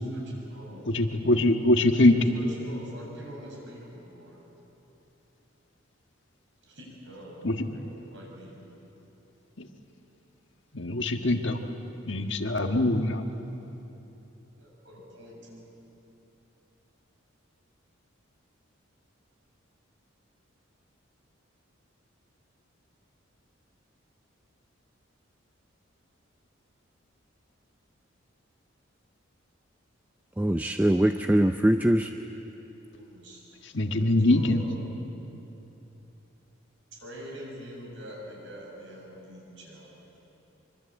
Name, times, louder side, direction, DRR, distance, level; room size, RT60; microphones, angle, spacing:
voice 1, 0.1-0.8 2.1-4.4 6.6-8.6 14.6-15.7 32.9-33.4 33.8-34.8 36.9-40.2, equal, 60° right, -2 dB, 7.3 m, -45 dB
voice 2, 0.9-2.2 7.4-7.6 10.7-11.6 12.1-13.2 33.7-34.6, left 1 dB, 60° left, 5 dB, 1.6 m, -23 dB
voice 3, 30.4-32.1, right 1 dB, 10° right, 6 dB, 0.5 m, -22 dB
25.0 x 24.5 x 8.4 m, 3.0 s
head